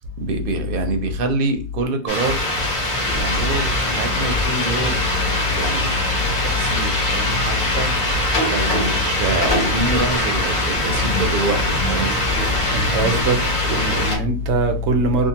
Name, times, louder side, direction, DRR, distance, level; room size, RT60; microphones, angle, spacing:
voice 1, 0.2-2.4 3.2-5.0 5.5-6.0 6.4-7.9 8.5-11.6 11.9-12.2, right 3 dB, 60° right, 0.7 m, -26 dB
sound 1, 2.1-14.2, left 1 dB, 50° left, 1.0 m, -22 dB
sound 2, 2.8-13.5, equal, 30° left, 0.7 m, -30 dB
voice 2, 12.7-13.4 13.6-15.3, right 1 dB, 90° right, 0.9 m, -21 dB
2.6 x 2.4 x 2.8 m
omnidirectional pair, 1.1 m